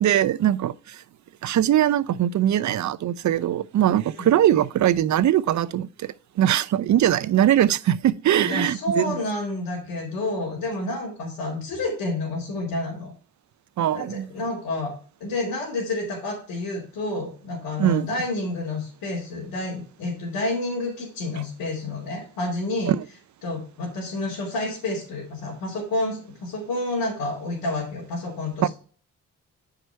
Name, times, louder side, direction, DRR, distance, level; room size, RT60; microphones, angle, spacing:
voice 1, 0.0-1.0 1.4-9.2 13.8-14.3 17.8-18.1 22.9-23.0 28.6-28.7, right 11 dB, 55° right, 0.6 m, -21 dB
voice 2, 8.4-13.1 13.9-14.9 15.2-22.9 23.4-28.7, left 2 dB, 85° left, 2.6 m, -29 dB
9.2 x 5.0 x 4.4 m
supercardioid pair, 65°, 34 cm